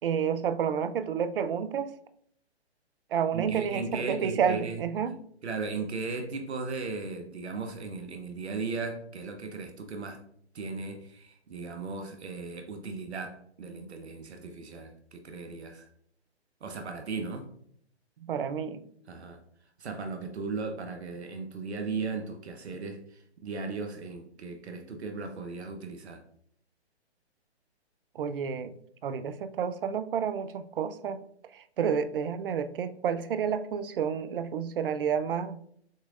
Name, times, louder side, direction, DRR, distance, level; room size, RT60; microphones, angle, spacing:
voice 1, 0.0-1.9 3.1-5.2 18.2-18.8 28.2-28.7 29.0-31.2 31.5-35.6, right 7 dB, 55° right, 11 dB, 0.5 m, -30 dB
voice 2, 3.3-4.8 5.4-10.2 10.5-15.9 16.6-17.5 19.1-19.4 19.8-26.2, right 4 dB, 70° right, 5 dB, 0.8 m, -37 dB
6.5 x 3.1 x 2.4 m, 0.67 s
hypercardioid pair, 135°, 34 cm